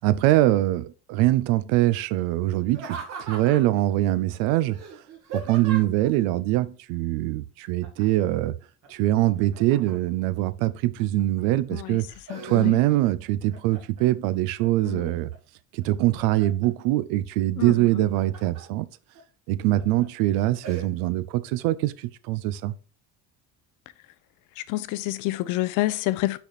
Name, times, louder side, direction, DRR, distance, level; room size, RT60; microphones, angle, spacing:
voice 1, 0.0-4.8 5.3-8.5 8.9-12.1 12.4-15.3 15.7-18.9 19.5-22.7, right 15 dB, 80° right, 0.5 m, -23 dB
Laughter, 2.7-3.8 4.7-6.1 7.8-8.3 8.6-10.2 10.8-11.4 11.8-13.1 13.5-14.1 14.6-15.4 15.8-16.7 17.8-18.6 19.2-19.3 19.8-20.1 20.6-20.9, right 4 dB, 50° right, 1.8 m, -40 dB
voice 2, 12.3-12.8 14.8-15.1 17.6-17.7 24.6-26.4, left 17 dB, 65° left, 0.6 m, -28 dB
5.9 x 4.2 x 4.0 m
supercardioid pair, 110°, 33 cm